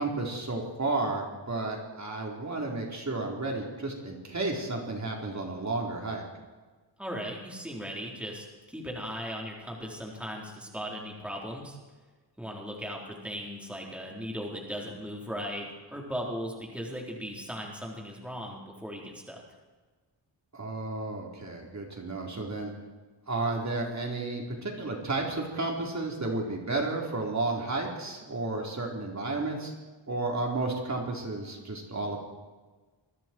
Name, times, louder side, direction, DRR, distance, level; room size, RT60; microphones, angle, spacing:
voice 1, 0.0-6.2 20.5-22.7 23.3-29.7 30.1-32.2, right 2 dB, 40° right, 0 dB, 4.3 m, -32 dB
voice 2, 7.0-11.8 12.4-19.4, equal, 5° right, -2 dB, 4.4 m, -38 dB
27.5 x 22.5 x 4.7 m, 1.3 s
wide cardioid pair, 120°, 44 cm